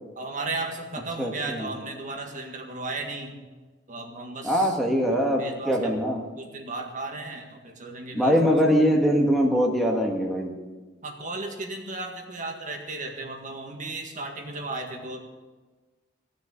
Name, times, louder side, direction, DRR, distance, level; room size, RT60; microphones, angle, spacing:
voice 1, 0.2-3.5 3.9-4.8 5.4-6.0 6.4-8.6 11.0-15.2, right 2 dB, 45° right, 3 dB, 1.8 m, -35 dB
voice 2, 1.2-1.7 4.4-6.2 8.1-10.5, equal, ahead, 0 dB, 1.6 m, -22 dB
16.5 x 6.7 x 9.1 m, 1.3 s
head